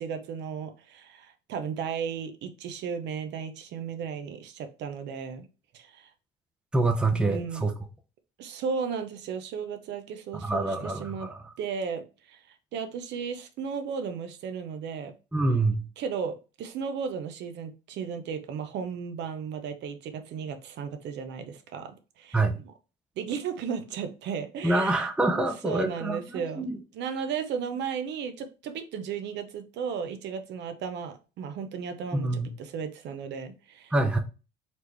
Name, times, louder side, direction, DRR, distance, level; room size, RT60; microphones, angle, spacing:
voice 1, 0.0-5.5 5.7-6.1 7.1-7.7 8.4-11.3 11.6-12.4 12.7-15.1 16.0-22.4 23.2-26.7 26.9-33.9, right 6 dB, 70° right, 0.7 m, -35 dB
voice 2, 6.7-7.7 10.3-11.5 15.3-15.9 22.3-22.6 24.6-26.8 32.1-32.5 33.9-34.2, right 2 dB, 5° right, 0.6 m, -26 dB
4.2 x 3.1 x 3.3 m
cardioid pair, 125°, 19 cm